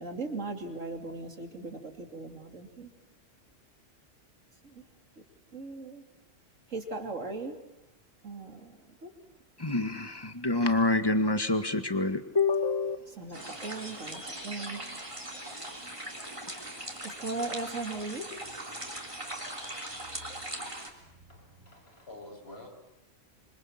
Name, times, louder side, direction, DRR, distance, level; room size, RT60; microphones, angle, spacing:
voice 1, 0.0-2.9 4.6-4.8 5.5-6.0 6.7-7.5 8.2-9.1 13.2-14.8 17.0-18.2, right 3 dB, 80° right, 5 dB, 3.2 m, -38 dB
voice 2, 9.6-13.4 16.4-17.2, left 3 dB, 20° left, 8 dB, 1.7 m, -28 dB
sound 1, 13.3-20.9, right 1 dB, 25° right, 3.3 m, -40 dB
voice 3, 20.4-22.7, left 2 dB, 55° left, 1 dB, 6.8 m, -50 dB
26.0 x 26.0 x 7.4 m, 0.91 s
omnidirectional pair, 1.3 m